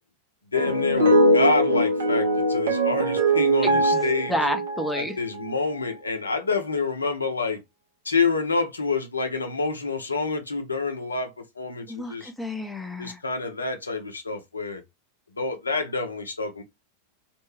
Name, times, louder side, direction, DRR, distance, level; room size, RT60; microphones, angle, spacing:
voice 1, 0.5-4.3 4.9-7.6 8.0-12.3 13.0-14.8 15.4-16.6, left 4 dB, 75° left, 0.6 m, -27 dB
sound 1, 0.5-5.5, right 1 dB, 65° right, 0.7 m, -22 dB
voice 2, 3.6-5.2 11.9-13.2, equal, 5° left, 0.5 m, -30 dB
2.5 x 2.2 x 3.1 m
figure-of-eight pair, 90°, 0 cm